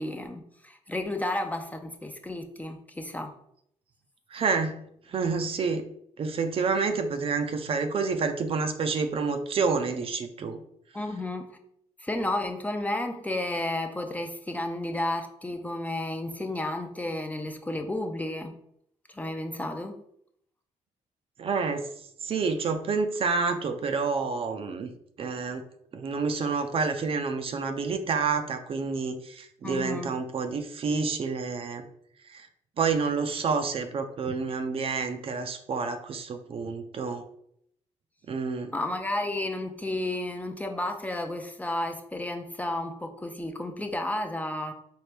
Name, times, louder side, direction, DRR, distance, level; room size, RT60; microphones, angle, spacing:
voice 1, 0.0-3.3 10.9-11.6 12.0-18.5 19.1-20.0 29.6-30.1 38.7-44.7, left 1 dB, 10° left, 5 dB, 0.4 m, -32 dB
voice 2, 4.3-4.8 5.1-5.8 6.2-10.6 21.4-21.9 22.2-24.9 25.2-25.6 25.9-31.8 32.3-32.5 32.8-37.3 38.3-38.7, right 4 dB, 45° right, 7 dB, 0.4 m, -28 dB
4.4 x 2.5 x 3.3 m, 0.71 s
cardioid pair, 95°, 13 cm